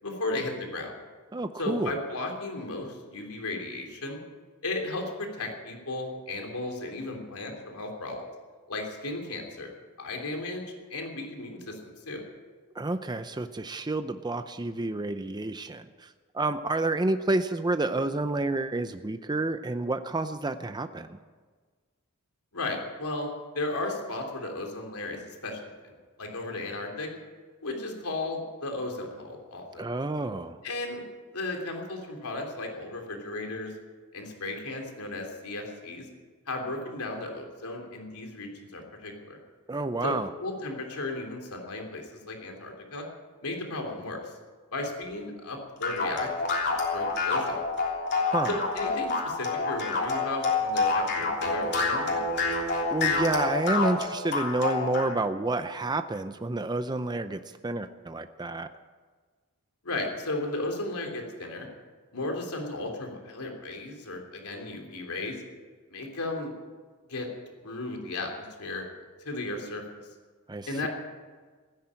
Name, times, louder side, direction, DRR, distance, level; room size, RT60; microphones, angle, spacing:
voice 1, 0.0-0.9 1.6-4.2 4.6-8.2 8.7-10.6 10.9-12.2 22.5-23.3 23.5-27.1 27.6-29.9 30.6-31.0 31.3-33.7 34.1-36.0 36.5-39.4 40.0-43.0 43.4-44.3 44.7-46.3 46.6-47.6 48.5-52.2 59.8-61.7 62.1-65.3 65.9-66.5 67.1-67.3 67.6-68.9 69.2-69.8 70.7-70.9, left 2 dB, 85° left, 2 dB, 3.3 m, -35 dB
voice 2, 1.3-1.9 12.7-21.2 29.8-30.6 39.7-40.3 48.2-48.6 52.9-58.7 70.5-70.9, right 2 dB, 20° right, 9 dB, 0.6 m, -29 dB
sound 1, 45.8-55.1, left 3 dB, 50° left, 3.3 m, -27 dB
16.0 x 10.5 x 8.8 m, 1.4 s
head